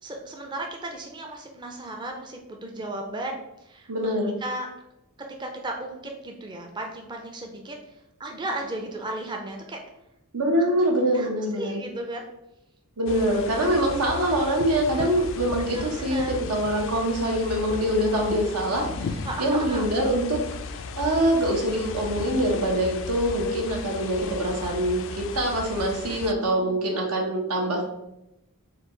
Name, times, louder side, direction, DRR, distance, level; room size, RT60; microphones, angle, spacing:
voice 1, 0.0-3.9 4.4-4.7 5.4-9.8 11.1-12.3 15.7-16.4 19.2-19.9 24.1-24.8 26.0-26.9, right 1 dB, 20° right, 2 dB, 0.4 m, -35 dB
voice 2, 3.9-4.3 10.3-11.8 13.0-27.9, right 1 dB, 90° right, 0 dB, 1.0 m, -24 dB
sound 1, 13.1-26.3, left 4 dB, 60° left, 0.3 m, -36 dB
4.5 x 2.3 x 3.8 m, 0.87 s
head